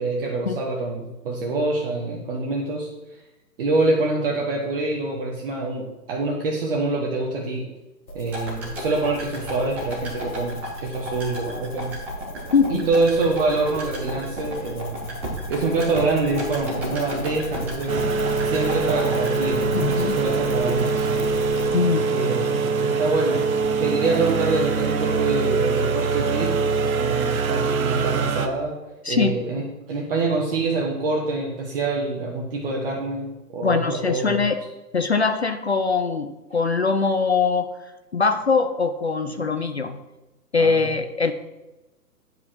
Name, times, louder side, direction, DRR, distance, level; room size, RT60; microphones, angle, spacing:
voice 1, 0.0-3.2 3.6-7.7 8.1-11.9 12.7-15.0 15.5-18.0 18.4-21.3 22.1-23.4 23.8-28.7 29.1-29.6 29.9-34.4 39.4-39.5 40.6-40.9, right 3 dB, 35° right, -2 dB, 1.1 m, -25 dB
sound 1, 8.1-21.7, equal, 90° left, 1.6 m, -36 dB
sound 2, 8.3-20.5 20.8-20.9, equal, 5° right, 0.7 m, -34 dB
voice 2, 12.5-12.9 19.7-20.1 21.7-22.1 29.0-29.3 33.6-34.6 34.9-37.7 38.1-40.0 40.5-41.3, left 5 dB, 45° left, 8 dB, 0.5 m, -22 dB
sound 3, 17.9-28.5, right 4 dB, 55° right, 1.0 m, -23 dB
9.7 x 4.9 x 4.5 m, 1.0 s
figure-of-eight pair, 140°, 49 cm